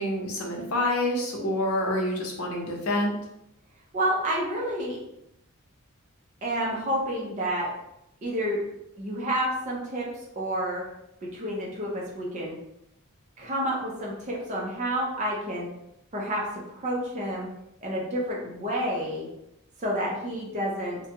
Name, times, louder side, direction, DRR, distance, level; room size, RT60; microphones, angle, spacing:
voice 1, 0.0-3.1, left 1 dB, 75° left, 0 dB, 0.7 m, -27 dB
voice 2, 3.9-5.0 6.4-7.7 8.2-8.6 9.0-10.1 10.4-10.8 11.2-12.6 13.4-15.7 16.1-17.5 17.8-19.3 19.8-21.0, equal, 35° right, -3 dB, 0.6 m, -29 dB
2.5 x 2.2 x 2.7 m, 0.81 s
head